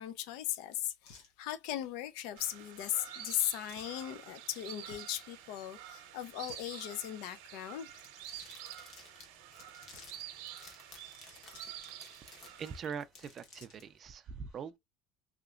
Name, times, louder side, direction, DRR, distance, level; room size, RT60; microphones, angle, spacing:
voice 1, 0.0-8.0, left 12 dB, 70° left, 0.5 m, -38 dB
sound 1, 1.0-1.3 2.3-2.6 3.7-4.0 4.8-5.2 6.3-6.7 7.9-8.6 9.5-10.2 11.0-11.8 12.1-12.2 13.0-13.9, left 4 dB, 85° left, 1.1 m, -57 dB
sound 2, 2.4-12.8, right 11 dB, 80° right, 0.7 m, -49 dB
sound 3, 8.2-13.8, left 3 dB, 40° left, 1.2 m, -56 dB
voice 2, 12.6-14.8, right 6 dB, 30° right, 0.3 m, -42 dB
3.1 x 2.9 x 2.4 m
cardioid pair, 165°, 0 cm